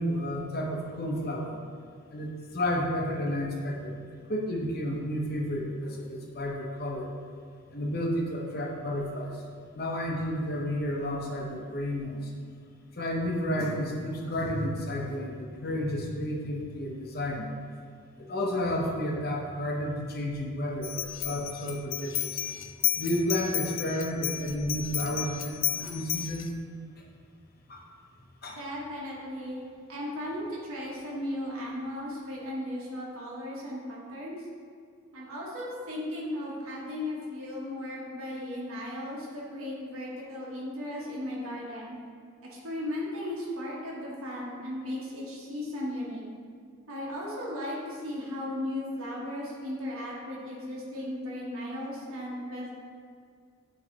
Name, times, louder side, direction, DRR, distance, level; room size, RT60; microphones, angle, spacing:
voice 1, 0.0-1.6 2.1-7.1 7.7-9.4 9.7-12.3 12.9-17.5 18.2-22.4 23.0-26.5 27.0-27.1 27.7-27.8 28.4-28.6, equal, 45° left, -1 dB, 0.8 m, -31 dB
sound 1, 20.8-26.5, left 13 dB, 60° left, 0.3 m, -32 dB
voice 2, 28.5-29.6 29.9-34.5 35.1-42.0 42.5-46.2 46.9-52.7, left 1 dB, 80° right, -5 dB, 1.3 m, -36 dB
8.0 x 3.2 x 3.9 m, 2.2 s
head